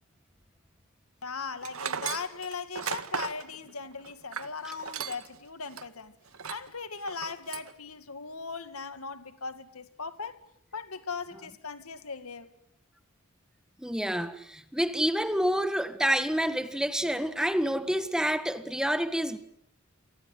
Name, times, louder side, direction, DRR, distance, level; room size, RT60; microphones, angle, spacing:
voice 1, 1.2-6.2 6.5-10.4 10.7-12.5, left 5 dB, 80° left, 2.2 m, -38 dB
Tools, 1.6-5.4 5.7-5.8 6.3-6.7 7.1-7.7, right 6 dB, 80° right, 1.9 m, -36 dB
voice 2, 13.8-19.4, equal, 5° right, 1.7 m, -28 dB
29.5 x 24.5 x 8.0 m
head